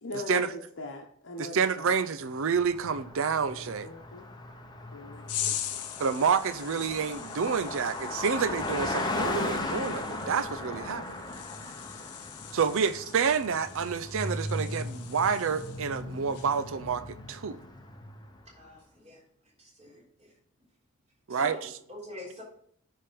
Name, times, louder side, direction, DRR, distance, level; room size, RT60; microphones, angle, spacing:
voice 1, 0.0-2.0 3.5-4.3 4.9-5.6, left 2 dB, 55° left, 1.0 m, -41 dB
voice 2, 1.4-3.9 6.0-11.0 12.5-17.0 17.3-17.6 21.3-21.6, right 6 dB, 60° right, 0.5 m, -28 dB
Car passing by, 2.4-18.4, left 2 dB, 20° left, 0.8 m, -37 dB
sound 1, 5.3-16.0 16.3-16.7, left 11 dB, 90° left, 0.8 m, -41 dB
voice 3, 18.6-19.2 19.6-20.3 21.3-21.6 21.9-22.4, left 1 dB, 30° right, 3.7 m, -44 dB
9.9 x 3.6 x 5.1 m
head